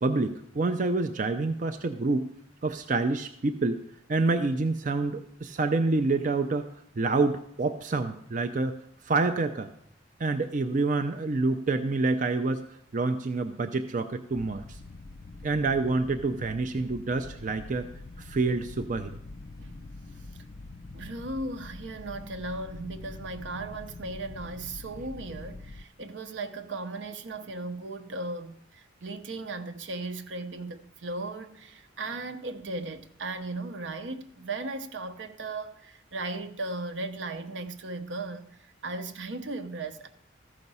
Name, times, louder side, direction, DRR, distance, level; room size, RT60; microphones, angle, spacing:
voice 1, 0.0-2.3 2.6-3.8 4.1-6.7 7.0-8.8 9.0-9.7 10.2-12.6 12.9-14.8 15.4-17.9 18.2-19.1, right 3 dB, 40° right, 0.4 m, -27 dB
sound 1, 14.3-25.8, left 2 dB, 45° left, 0.4 m, -45 dB
voice 2, 20.0-20.4 20.9-40.1, right 2 dB, 70° right, 0.8 m, -37 dB
14.0 x 5.8 x 5.4 m
head